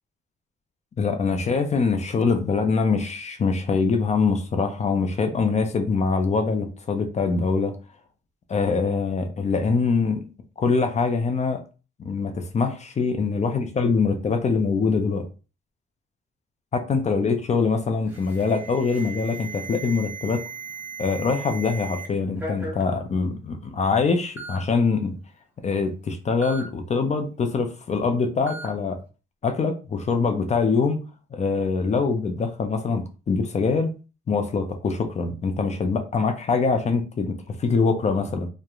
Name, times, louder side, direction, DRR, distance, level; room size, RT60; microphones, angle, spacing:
voice 1, 1.0-7.7 8.5-10.2 10.6-11.6 12.0-15.3 16.7-20.4 21.0-25.2 25.6-29.0 29.4-33.9 34.3-38.5, left 4 dB, 35° left, 0.5 m, -24 dB
Alarm, 18.1-22.1 22.4-22.8 23.7-23.8 24.4-24.6 26.4-26.6 28.5-28.7, right 4 dB, 10° right, 0.8 m, -37 dB
2.9 x 2.1 x 2.4 m
cardioid pair, 90°, 20 cm